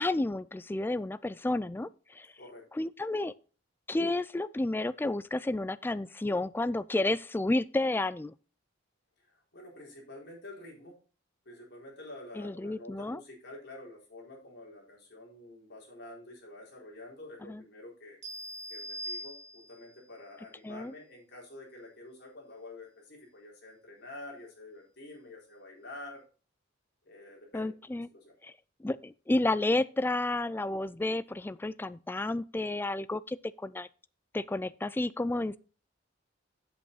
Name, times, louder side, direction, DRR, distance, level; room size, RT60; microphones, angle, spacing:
voice 1, 0.0-2.3 2.7-3.3 3.9-8.3 12.4-13.2 17.5-17.6 20.6-20.9 27.5-28.1 28.4-28.5 28.8-33.9 34.3-35.6, left 2 dB, 10° left, 0.3 m, -31 dB
voice 2, 9.5-11.0 11.5-18.2 18.7-26.2 27.0-27.7 28.1-28.3, left 2 dB, 60° left, 4.2 m, -48 dB
sound 1, 18.2-20.0, equal, 35° right, 2.5 m, -41 dB
8.1 x 7.9 x 4.0 m
head